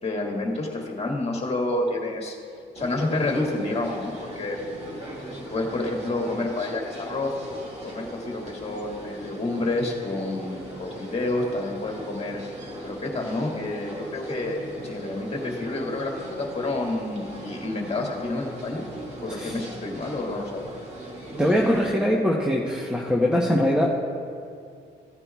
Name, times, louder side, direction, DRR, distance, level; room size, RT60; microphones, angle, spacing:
voice 1, 0.0-2.4 2.8-4.6 5.5-7.3 7.8-12.4 12.8-14.6 14.8-18.8 19.2-20.7, left 2 dB, 30° left, -1 dB, 1.9 m, -29 dB
sound 1, 2.8-21.9, right 1 dB, 35° right, 2.2 m, -39 dB
voice 2, 21.4-23.9, equal, 5° right, -3 dB, 0.9 m, -22 dB
15.5 x 9.7 x 2.4 m, 2.4 s
cardioid pair, 90°, 20 cm